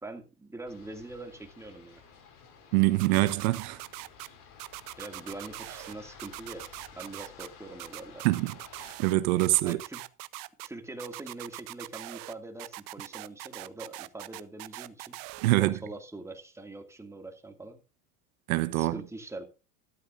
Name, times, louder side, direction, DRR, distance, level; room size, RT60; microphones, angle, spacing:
voice 1, 0.0-2.0 5.0-6.7 6.9-8.3 9.6-10.0 10.6-15.2 15.6-17.8 18.7-19.5, right 2 dB, 5° right, 2.3 m, -43 dB
sound 1, 0.7-9.0, left 6 dB, 50° left, 4.8 m, -53 dB
voice 2, 2.7-3.8 8.2-8.5 9.0-9.8 15.4-15.8 18.5-19.0, right 18 dB, 80° right, 1.0 m, -24 dB
sound 2, 3.0-4.3 4.6-5.9 6.2-7.5 7.8-9.1 9.4-10.7 11.0-12.3 12.6-15.5, right 22 dB, 55° right, 0.8 m, -42 dB
13.0 x 13.0 x 2.5 m
supercardioid pair, 120°, 41 cm